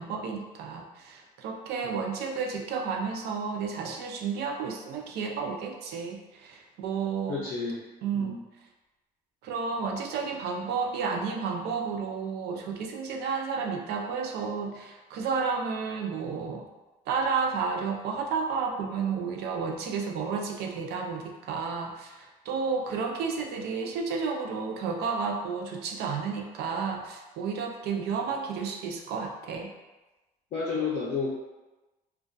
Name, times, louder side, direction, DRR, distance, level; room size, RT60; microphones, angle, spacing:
voice 1, 0.0-7.4 8.0-8.4 9.4-16.7 17.1-29.7, right 5 dB, 75° right, 2 dB, 0.4 m, -31 dB
voice 2, 7.3-7.8 8.1-8.4 30.5-31.3, left 4 dB, 50° left, -5 dB, 0.5 m, -31 dB
2.5 x 2.2 x 2.2 m, 1.1 s
cardioid pair, 110°, 17 cm